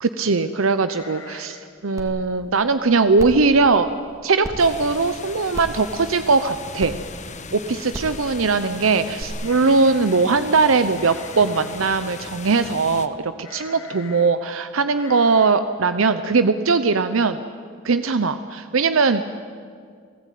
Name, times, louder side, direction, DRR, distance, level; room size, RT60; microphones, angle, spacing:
voice 1, 0.0-3.9 4.2-6.9 7.5-17.4 17.8-19.2, right 4 dB, 80° right, 11 dB, 0.8 m, -20 dB
sound 1, 0.8-1.8 2.0-2.1 2.6-2.9 3.4-3.5 3.8-4.3 4.7-4.8 5.9-6.0 6.3-6.7 9.4-10.4 10.9-11.9 13.4-14.4 14.9-15.5, left 3 dB, 90° left, 2.4 m, -43 dB
sound 2, 2.0-2.1 2.5-2.6 3.2-3.4 4.4-4.5 5.5-5.8 6.8-6.9 7.9-8.1 9.2-9.3, equal, 15° right, 2.3 m, -32 dB
sound 3, 4.6-13.1, left 4 dB, 35° left, 1.3 m, -38 dB
29.5 x 17.5 x 9.3 m, 2.1 s
head